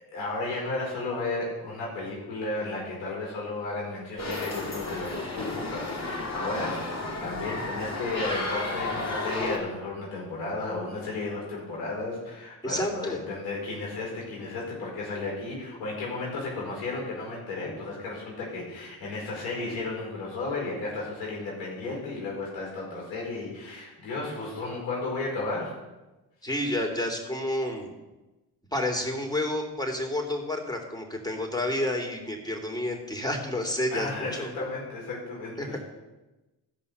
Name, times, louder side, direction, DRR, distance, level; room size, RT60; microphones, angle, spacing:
voice 1, 0.1-25.7 33.9-35.8, left 3 dB, 85° left, -3 dB, 5.1 m, -34 dB
sound 1, 4.2-9.6, left 2 dB, 40° left, 3.0 m, -32 dB
voice 2, 12.6-13.2 26.4-27.9 28.7-34.5 35.6-35.8, left 1 dB, 10° left, 2 dB, 3.2 m, -30 dB
15.0 x 5.4 x 6.9 m, 1.1 s
supercardioid pair, 50°, 42 cm